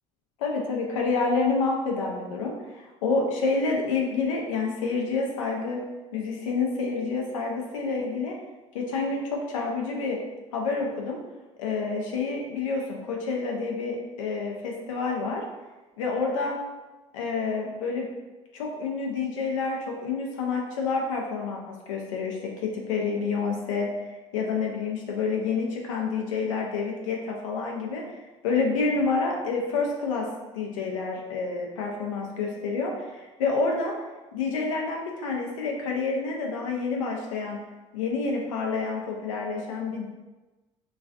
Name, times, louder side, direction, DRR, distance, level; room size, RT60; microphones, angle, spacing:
voice 1, 0.4-5.8 6.1-8.3 8.7-10.2 10.5-11.2 11.6-15.4 16.0-16.5 17.1-18.1 18.5-23.9 24.3-28.0 28.4-33.9 34.3-37.6 37.9-40.1, left 4 dB, 80° left, 0 dB, 0.4 m, -28 dB
2.3 x 2.3 x 2.4 m, 1.2 s
hypercardioid pair, 60°, 17 cm